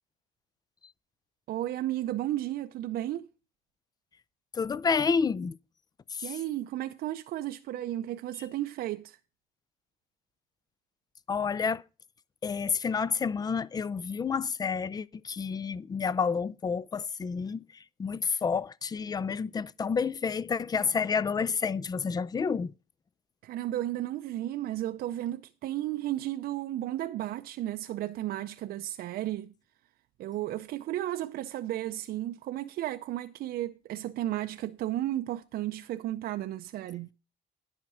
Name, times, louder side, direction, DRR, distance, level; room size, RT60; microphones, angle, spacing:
voice 1, 1.5-3.3 6.2-9.2 23.4-29.5 30.2-37.1, right 13 dB, 65° right, 0.5 m, -33 dB
voice 2, 4.5-5.6 6.1-6.4 11.3-11.8 12.4-22.7, left 5 dB, 25° left, 0.4 m, -29 dB
10.5 x 5.8 x 6.2 m
cardioid pair, 110°, 17 cm